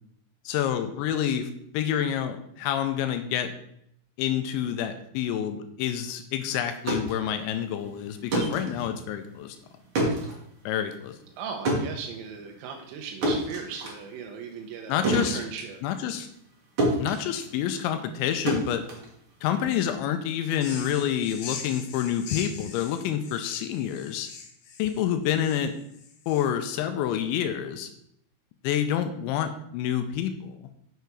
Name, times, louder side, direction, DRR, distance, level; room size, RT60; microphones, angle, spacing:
voice 1, 0.5-1.5 1.7-3.5 4.2-9.6 10.7-11.2 14.9-15.4 15.8-16.3 17.0-18.8 19.4-24.3 24.8-25.7 26.3-27.9 28.6-30.6, left 10 dB, 90° left, 7 dB, 3.0 m, -28 dB
sound 1, 6.6-16.5 16.8-19.7, right 1 dB, 50° right, 1.6 m, -30 dB
voice 2, 11.4-15.8, right 6 dB, 90° right, 2 dB, 3.0 m, -37 dB
sound 2, 20.5-26.8, left 6 dB, 75° left, 2.9 m, -42 dB
6.9 x 6.7 x 4.7 m, 0.73 s
omnidirectional pair, 5.2 m